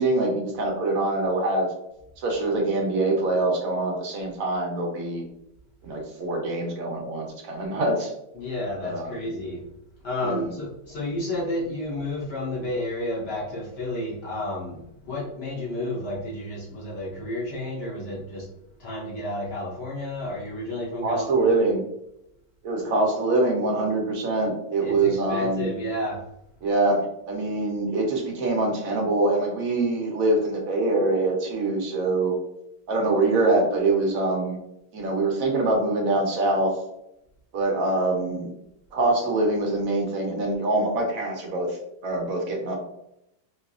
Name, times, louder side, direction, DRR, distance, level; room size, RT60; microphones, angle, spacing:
voice 1, 0.0-1.7 2.2-5.2 5.8-8.1 8.8-9.2 10.2-10.4 21.0-21.8 22.6-25.7 26.6-32.4 32.9-34.6 34.9-36.7 37.5-38.5 38.9-41.7 42.0-42.8, right 2 dB, 60° right, 0 dB, 1.2 m, -24 dB
voice 2, 8.3-9.6 10.0-18.5 18.8-21.6 24.8-26.2, left 1 dB, 40° left, -5 dB, 1.3 m, -31 dB
4.1 x 2.8 x 2.4 m, 0.80 s
omnidirectional pair, 1.9 m